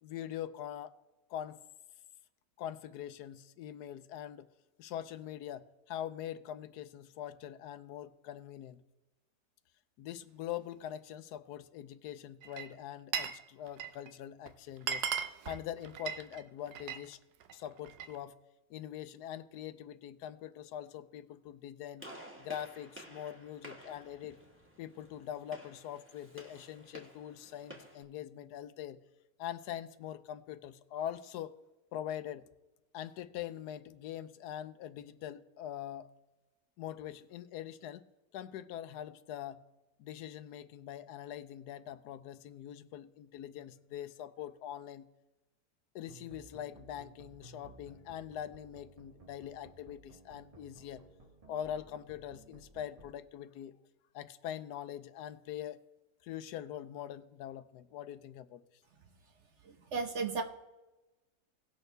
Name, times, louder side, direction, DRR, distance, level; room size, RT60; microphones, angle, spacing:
voice 1, 0.0-0.9 1.3-1.6 2.6-4.5 4.8-8.8 10.0-17.2 17.5-18.4 18.7-22.1 22.4-24.4 24.8-29.0 29.4-31.5 31.9-32.4 32.9-36.1 36.8-38.0 38.3-39.6 40.0-45.1 45.9-51.0 51.5-53.7 54.1-55.8 56.2-58.6, left 10 dB, 85° left, 13 dB, 1.1 m, -43 dB
Glass, 12.4-13.4 13.7-14.1 14.5-14.6 14.8-17.0 17.4-18.2, right 8 dB, 80° right, 1.2 m, -37 dB
Gunshot gunfire, 22.0-28.0, equal, 10° right, 1.5 m, -53 dB
sound 1, 46.1-53.1, right 3 dB, 25° right, 1.0 m, -57 dB
voice 2, 59.6-60.4, right 4 dB, 50° right, 6 dB, 1.1 m, -35 dB
18.0 x 6.5 x 3.3 m, 1.1 s
omnidirectional pair, 1.7 m